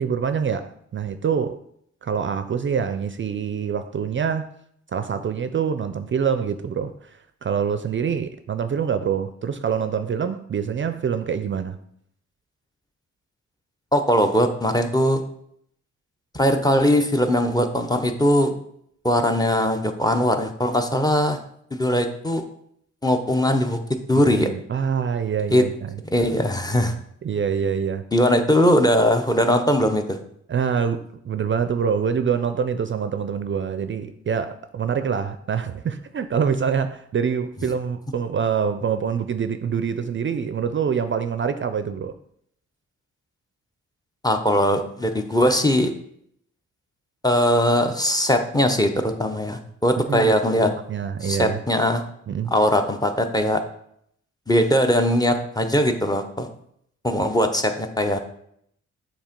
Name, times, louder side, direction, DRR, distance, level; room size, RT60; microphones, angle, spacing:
voice 1, 0.0-1.6 2.0-4.5 4.9-11.8 24.3-26.0 27.2-28.0 30.5-42.2 50.0-50.3 50.6-51.6 52.3-52.5, right 7 dB, 45° right, 10 dB, 0.4 m, -25 dB
voice 2, 13.9-15.2 16.3-18.5 19.0-21.4 21.7-22.4 23.0-23.8 24.1-24.5 25.5-25.6 26.1-26.9 28.1-30.2 44.2-45.9 47.2-50.7 51.2-52.0 52.5-53.6 54.5-56.5 57.0-58.2, equal, 15° left, 5 dB, 0.8 m, -20 dB
7.2 x 2.9 x 5.2 m, 0.70 s
cardioid pair, 75°, 29 cm